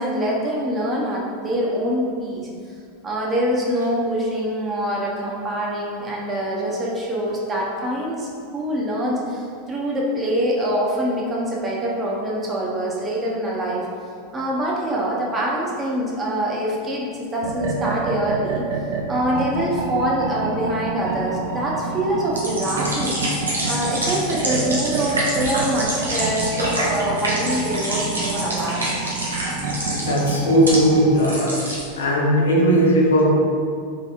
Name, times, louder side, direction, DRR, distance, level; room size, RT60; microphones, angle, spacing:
voice 1, 0.0-2.5 3.0-13.9 14.3-18.6 19.1-23.3 23.6-29.1, equal, 20° right, -4 dB, 0.7 m, -24 dB
sound 1, 17.4-31.1, right 3 dB, 65° right, 0.3 m, -28 dB
sound 2, 22.3-30.8 31.1-31.8, right 1 dB, 85° right, 0.7 m, -27 dB
voice 2, 29.9-31.5 32.0-33.3, equal, 80° left, -2 dB, 0.5 m, -17 dB
3.4 x 2.5 x 2.4 m, 2.2 s
hypercardioid pair, 90°, 0 cm